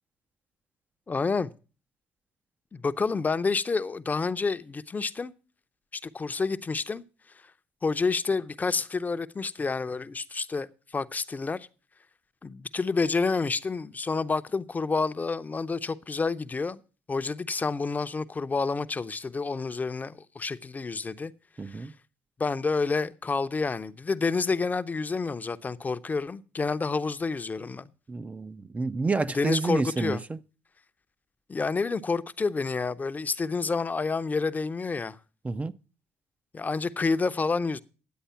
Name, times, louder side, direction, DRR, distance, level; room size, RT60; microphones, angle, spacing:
voice 1, 1.1-1.5 2.7-5.3 5.9-7.0 7.8-11.7 12.4-16.8 17.1-21.3 21.7-21.9 22.4-27.9 29.3-30.2 31.5-35.2 36.5-37.8, left 4 dB, 25° left, 0.7 m, -29 dB
voice 2, 21.6-21.9 28.1-30.4 35.4-35.7, right 3 dB, 20° right, 0.6 m, -29 dB
10.5 x 8.0 x 5.7 m
supercardioid pair, 75°, 6 cm